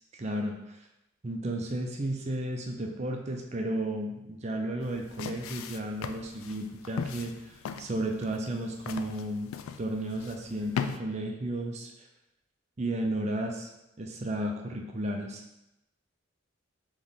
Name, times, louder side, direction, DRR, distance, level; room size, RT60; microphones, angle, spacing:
voice 1, 0.2-0.8 1.2-11.9 12.8-13.7 14.0-15.4, right 1 dB, 35° right, 2 dB, 0.5 m, -33 dB
sound 1, 4.8-11.0, left 7 dB, 90° left, 0.3 m, -38 dB
3.6 x 3.1 x 3.9 m, 0.91 s
head